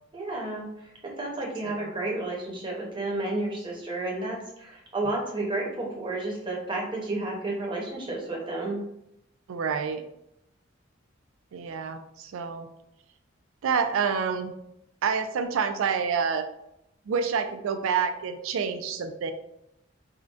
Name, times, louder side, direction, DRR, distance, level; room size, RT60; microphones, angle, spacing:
voice 1, 0.1-0.6 1.0-8.8, right 2 dB, 25° right, -2 dB, 0.7 m, -31 dB
voice 2, 9.5-10.0 11.5-12.7 13.6-14.5 15.0-16.5 17.1-19.3, right 6 dB, 80° right, 8 dB, 0.4 m, -28 dB
3.7 x 2.2 x 2.4 m, 0.80 s
head